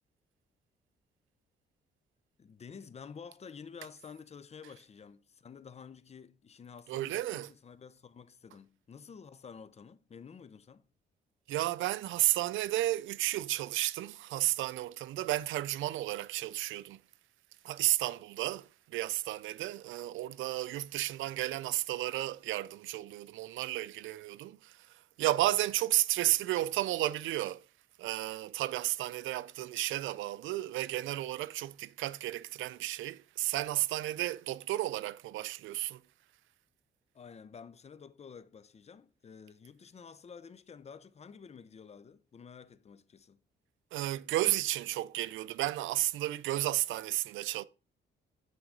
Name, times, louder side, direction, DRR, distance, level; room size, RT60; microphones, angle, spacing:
voice 1, 2.4-10.9 37.1-43.4, left 6 dB, 35° left, 0.6 m, -50 dB
voice 2, 6.9-7.5 11.5-17.0 17.6-27.6 28.0-36.0 43.9-47.6, right 15 dB, 80° right, 0.4 m, -33 dB
8.9 x 3.7 x 3.8 m
cardioid pair, 90°, 20 cm